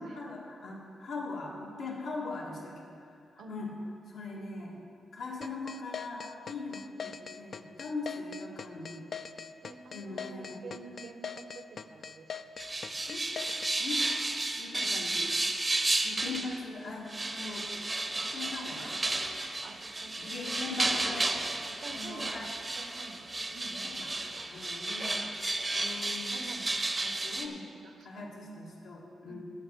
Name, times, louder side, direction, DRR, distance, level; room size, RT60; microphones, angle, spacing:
voice 1, 0.0-3.7 4.1-4.8 5.1-9.1 9.9-10.7 13.1-13.2 13.8-14.0 14.6-15.3 16.0-17.7 18.1-18.9 20.2-21.4 21.7-22.5 23.8-24.2 24.5-25.2 25.7-26.4 27.0-27.6 28.0-29.5, left 3 dB, 80° left, -5 dB, 1.9 m, -41 dB
sound 1, 5.4-13.8, left 6 dB, 50° left, 0.4 m, -41 dB
voice 2, 9.6-12.3 12.8-12.9 14.8-15.0 18.8-19.0 19.6-20.1 20.5-20.8 21.6-24.0 25.0-25.2 26.3-26.7 27.4-28.6 29.2-29.5, right 3 dB, 65° right, 6 dB, 0.8 m, -48 dB
sound 2, 12.6-16.6 17.1-27.5, right 2 dB, 20° right, 0.7 m, -33 dB
13.0 x 7.7 x 4.6 m, 2.4 s
cardioid pair, 125°, 0 cm